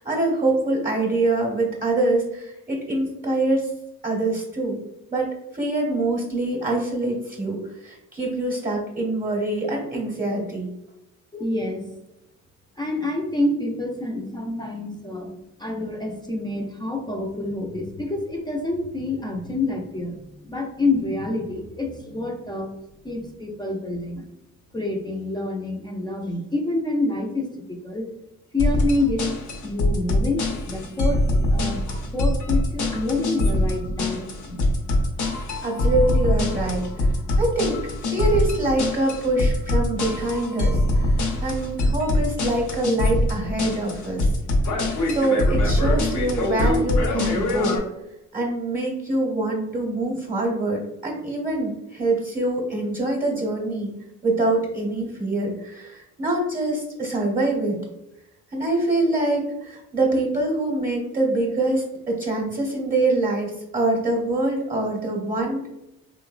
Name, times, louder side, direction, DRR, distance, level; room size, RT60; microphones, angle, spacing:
voice 1, 0.0-3.7 4.0-4.8 5.1-10.7 35.6-37.8 38.1-44.3 45.1-47.8 48.3-53.9 54.2-57.8 58.5-65.7, right 2 dB, 25° right, -1 dB, 0.8 m, -25 dB
voice 2, 11.3-11.8 12.8-22.7 23.0-24.2 24.7-28.1 28.5-29.3 29.6-31.2 31.5-34.6, left 2 dB, 15° left, 1 dB, 0.4 m, -27 dB
sound 1, 28.6-47.8, left 1 dB, 70° left, 0.7 m, -23 dB
3.0 x 2.1 x 2.4 m, 0.88 s
cardioid pair, 90°, 30 cm